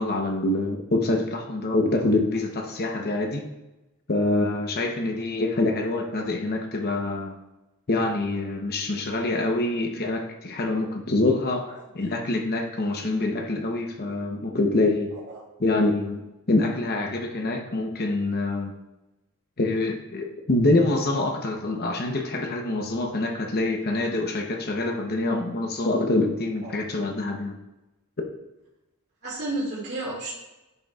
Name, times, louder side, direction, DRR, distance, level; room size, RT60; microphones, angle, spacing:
voice 1, 0.0-3.5 4.1-7.3 7.9-15.1 15.6-18.7 19.6-27.6, left 2 dB, 45° left, 3 dB, 0.8 m, -25 dB
voice 2, 15.1-15.5 17.0-17.1 26.6-26.7 29.2-30.3, right 2 dB, 55° right, -8 dB, 2.2 m, -32 dB
10.5 x 6.2 x 2.4 m, 1.0 s
head